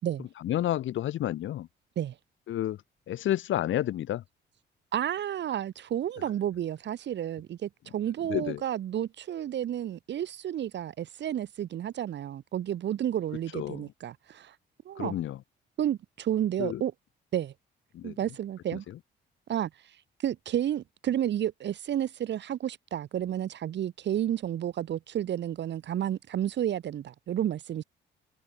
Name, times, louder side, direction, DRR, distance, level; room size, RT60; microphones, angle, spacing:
voice 1, 0.4-1.7 2.5-2.8 3.1-4.2 8.3-8.6 13.5-13.8 15.0-15.4 16.6-16.8 17.9-18.2, left 12 dB, 75° left, 2.4 m, -30 dB
voice 2, 4.9-14.5 14.8-15.1 15.8-16.9 17.3-17.5 18.0-18.8 19.5-20.0 20.2-27.8, right 11 dB, 65° right, 1.3 m, -31 dB
cardioid pair, 90°, 20 cm